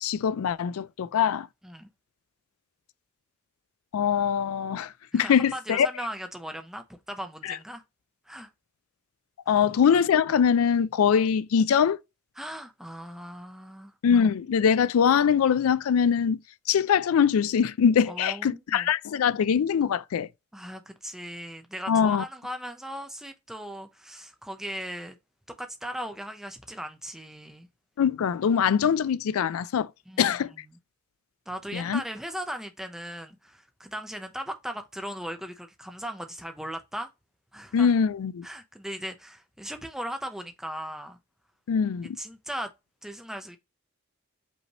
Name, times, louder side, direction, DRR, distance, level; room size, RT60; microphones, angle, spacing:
voice 1, 0.0-1.5 3.9-5.9 7.4-7.6 9.5-12.0 14.0-16.4 16.7-20.3 21.9-22.2 28.0-29.9 30.2-30.5 31.7-32.0 37.7-38.5 41.7-42.2, left 7 dB, 80° left, 0.3 m, -23 dB
voice 2, 5.1-7.8 8.3-8.5 9.5-9.7 12.4-13.9 18.1-18.9 20.5-25.2 25.6-27.7 30.1-30.7 31.5-37.1 37.5-38.0 38.4-41.2 42.2-42.7 43.0-43.6, equal, ahead, 0.6 m, -38 dB
5.3 x 3.1 x 2.9 m
head